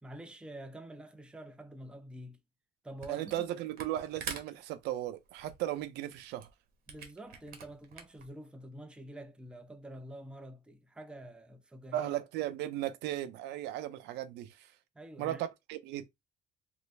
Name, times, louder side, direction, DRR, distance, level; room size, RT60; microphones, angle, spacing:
voice 1, 0.0-2.4 2.8-3.6 6.9-12.1 14.9-15.4, right 1 dB, 5° right, 0.5 m, -47 dB
Camera, 3.0-3.5 3.7-8.3, right 6 dB, 60° right, 1.0 m, -45 dB
voice 2, 3.1-6.5 11.9-14.7 15.2-16.1, right 13 dB, 85° right, 0.5 m, -36 dB
3.0 x 2.5 x 3.2 m
cardioid pair, 110°, 17 cm